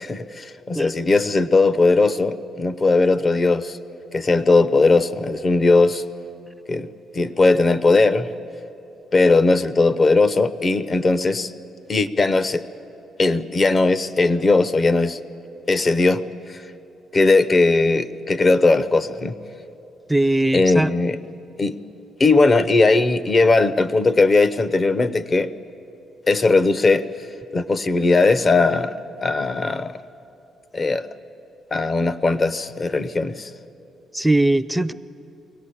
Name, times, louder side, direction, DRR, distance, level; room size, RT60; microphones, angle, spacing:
voice 1, 0.0-3.8 4.1-6.0 6.7-6.9 7.1-8.3 9.1-11.5 11.9-12.6 13.2-15.2 15.7-16.2 17.1-19.4 20.5-21.2 21.6-21.8 22.2-25.5 26.3-27.0 27.5-29.0 29.2-29.9 30.7-31.1 31.7-33.5, left 3 dB, 35° left, 0.7 m, -18 dB
voice 2, 20.1-20.9 34.1-34.9, right 1 dB, 5° right, 0.5 m, -19 dB
23.0 x 18.0 x 8.5 m
cardioid pair, 100°, 0 cm